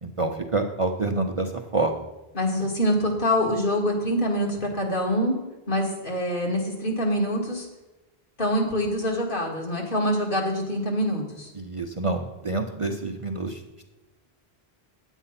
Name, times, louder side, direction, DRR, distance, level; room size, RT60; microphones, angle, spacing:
voice 1, 0.0-2.1 11.6-13.6, right 2 dB, 35° right, 3 dB, 0.7 m, -27 dB
voice 2, 2.3-5.4 5.7-7.7 8.4-11.5, equal, 55° left, -1 dB, 2.4 m, -25 dB
10.0 x 8.1 x 5.8 m, 1.1 s
omnidirectional pair, 1.1 m